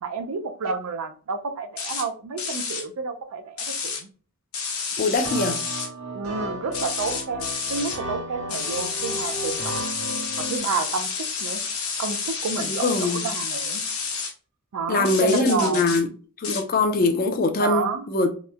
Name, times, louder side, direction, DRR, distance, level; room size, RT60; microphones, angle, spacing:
voice 1, 0.0-4.1 6.1-9.8 10.4-11.1 11.4-11.6 12.0-13.8 14.7-15.9 17.6-18.1, right 5 dB, 85° right, 0.4 m, -30 dB
sound 1, 1.8-2.1 2.4-2.8 3.6-4.0 4.5-5.9 6.7-8.0 8.5-14.3 15.1-16.0 16.4-16.6, left 5 dB, 70° left, 0.7 m, -30 dB
voice 2, 5.0-5.6 12.7-13.2 14.9-16.1 16.4-18.3, left 3 dB, 40° left, 0.3 m, -22 dB
sound 2, 5.2-10.6, right 1 dB, 65° right, 1.3 m, -34 dB
2.9 x 2.0 x 2.3 m
head